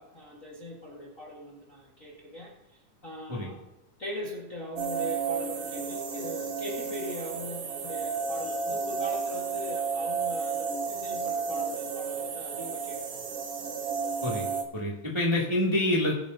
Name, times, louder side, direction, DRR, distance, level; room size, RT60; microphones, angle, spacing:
voice 1, 0.0-3.6 4.0-13.3, left 1 dB, 30° left, -4 dB, 1.8 m, -41 dB
sound 1, 4.8-14.6, right 5 dB, 60° right, 2.0 m, -32 dB
voice 2, 14.7-16.1, left 1 dB, 10° right, -4 dB, 1.8 m, -27 dB
21.0 x 8.7 x 2.8 m, 0.92 s
omnidirectional pair, 3.4 m